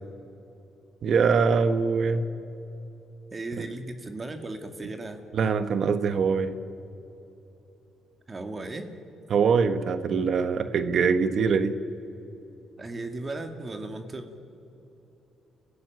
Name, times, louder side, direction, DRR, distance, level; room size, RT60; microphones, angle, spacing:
voice 1, 1.0-2.2 3.6-3.7 5.3-6.5 9.3-11.7, right 5 dB, 60° right, 11 dB, 1.2 m, -23 dB
voice 2, 3.3-5.2 8.3-8.9 12.8-14.3, right 2 dB, 30° right, 7 dB, 2.3 m, -36 dB
30.0 x 15.5 x 9.4 m, 2.9 s
cardioid pair, 90°, 0 cm